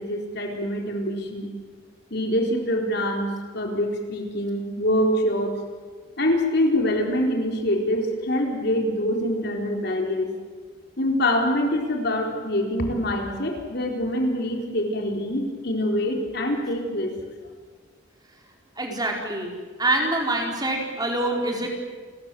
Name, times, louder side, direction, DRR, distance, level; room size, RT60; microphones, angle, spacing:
voice 1, 0.0-1.5 2.1-5.6 6.2-10.3 11.0-17.1, left 1 dB, 60° left, 2 dB, 4.2 m, -25 dB
voice 2, 18.8-19.5 19.8-21.7, right 2 dB, 20° right, 1 dB, 4.6 m, -25 dB
29.5 x 22.5 x 7.8 m, 1.5 s
head